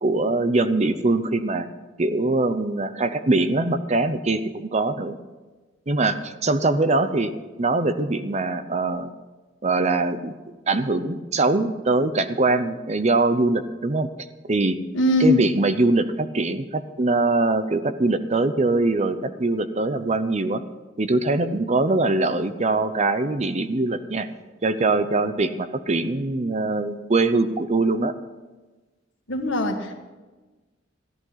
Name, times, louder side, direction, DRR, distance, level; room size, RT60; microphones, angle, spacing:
voice 1, 0.0-1.7 2.0-5.2 5.9-7.3 7.6-9.1 9.6-10.4 10.7-14.1 14.4-14.8 15.2-20.6 21.0-24.3 24.6-28.1, right 2 dB, 35° right, 11 dB, 0.7 m, -22 dB
voice 2, 14.9-15.4 29.3-30.0, left 1 dB, 75° left, 4 dB, 1.6 m, -21 dB
14.5 x 11.0 x 5.7 m, 1.2 s
head